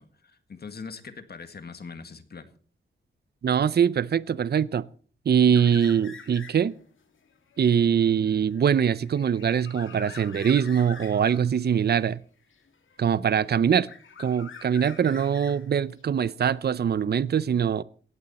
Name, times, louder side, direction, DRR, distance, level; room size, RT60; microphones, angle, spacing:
voice 1, 0.0-2.5, left 5 dB, 55° left, 1.9 m, -42 dB
voice 2, 3.4-4.8 5.3-6.7 7.6-12.2 13.0-13.9 14.2-17.8, right 8 dB, 55° right, 0.6 m, -23 dB
sound 1, 5.5-6.8 7.2-11.5 12.5-13.3 13.6-16.0, left 6 dB, 80° left, 2.4 m, -45 dB
18.0 x 14.5 x 4.2 m
wide cardioid pair, 110°, 20 cm